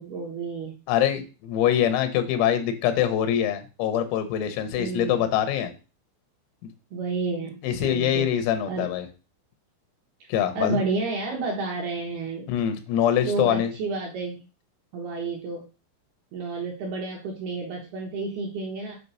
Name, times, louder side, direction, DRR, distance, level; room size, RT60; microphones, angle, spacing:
voice 1, 0.0-0.8 4.8-5.3 6.9-8.3 8.7-8.9 10.6-12.5 13.3-14.5 14.9-15.6 16.3-19.0, right 3 dB, 75° right, -1 dB, 2.3 m, -30 dB
voice 2, 0.9-5.7 7.6-9.1 10.3-10.8 12.5-13.7, left 10 dB, 90° left, 9 dB, 3.7 m, -24 dB
8.3 x 3.2 x 5.5 m, 0.32 s
omnidirectional pair, 5.9 m